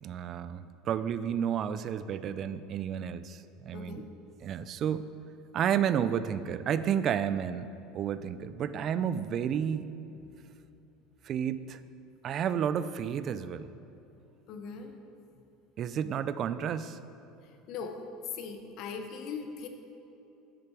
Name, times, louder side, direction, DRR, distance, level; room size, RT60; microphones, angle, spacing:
voice 1, 0.0-4.0 4.4-5.1 5.5-7.7 7.9-9.9 11.2-11.8 12.2-13.7 15.8-17.0, right 8 dB, 40° right, 13 dB, 0.3 m, -31 dB
voice 2, 3.7-4.0 14.5-15.0 17.7-18.0 18.4-19.7, left 5 dB, 55° left, 6 dB, 0.9 m, -40 dB
10.0 x 6.5 x 4.6 m, 2.9 s
cardioid pair, 140°, 0 cm